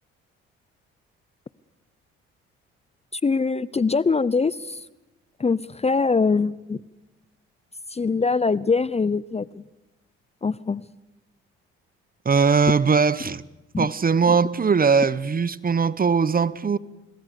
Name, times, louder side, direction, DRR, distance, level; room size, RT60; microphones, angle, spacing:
voice 1, 3.2-4.8 5.4-6.8 7.9-9.6 10.4-10.8 13.7-13.9 14.3-14.4, left 4 dB, 20° left, 0.7 m, -23 dB
voice 2, 12.2-13.4 13.8-16.8, right 5 dB, 30° right, 1.0 m, -20 dB
26.5 x 20.0 x 6.7 m
hypercardioid pair, 55°, 30 cm